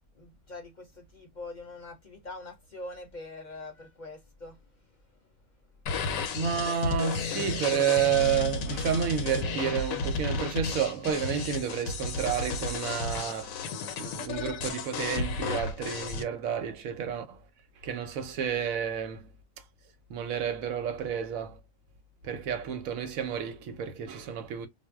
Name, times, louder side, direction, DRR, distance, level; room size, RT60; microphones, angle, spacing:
voice 1, 0.1-4.6, left 2 dB, 45° left, 0.7 m, -43 dB
sound 1, 5.9-16.2, left 4 dB, 80° left, 1.0 m, -33 dB
voice 2, 6.3-13.6 13.9-17.4 17.8-19.3 20.1-21.6 22.2-24.7, right 8 dB, 80° right, 1.0 m, -30 dB
2.4 x 2.0 x 3.3 m
omnidirectional pair, 1.4 m